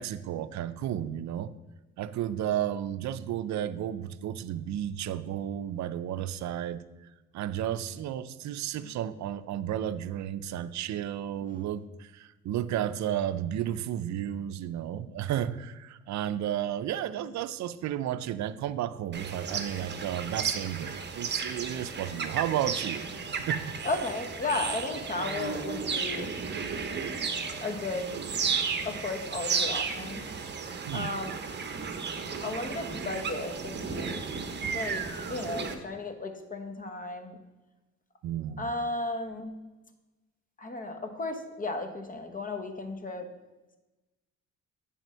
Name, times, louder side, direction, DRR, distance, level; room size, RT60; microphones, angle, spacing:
voice 1, 0.0-1.5 2.0-6.8 7.3-23.1 23.4-23.8 30.9-31.1 38.2-38.7, right 11 dB, 65° right, 12 dB, 0.5 m, -33 dB
sound 1, 19.1-35.7, right 5 dB, 35° right, 1.0 m, -34 dB
voice 2, 23.8-26.3 27.6-28.1 28.8-30.2 30.9-31.4 32.4-34.2 34.7-35.0 35.3-37.3 38.6-39.5 40.6-43.2, left 2 dB, 25° left, 6 dB, 1.1 m, -34 dB
8.7 x 3.6 x 6.2 m, 1.1 s
cardioid pair, 90°, 30 cm